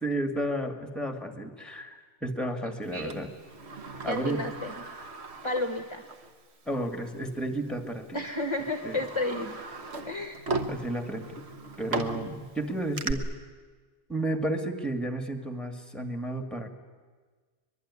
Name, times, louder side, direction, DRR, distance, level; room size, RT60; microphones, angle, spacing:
voice 1, 0.0-3.3 4.0-4.4 6.7-8.2 8.8-9.0 10.7-11.4 11.8-13.3 14.1-16.7, right 1 dB, ahead, 6 dB, 2.0 m, -32 dB
voice 2, 2.6-3.2 4.0-4.7 5.4-6.1 8.1-9.5 10.0-10.5, left 2 dB, 20° left, 7 dB, 1.2 m, -32 dB
Sliding door, 3.1-6.3 6.7-6.8 7.7-7.9 8.4-13.1, right 3 dB, 50° right, 1.5 m, -37 dB
24.0 x 21.5 x 9.8 m, 1.5 s
omnidirectional pair, 1.5 m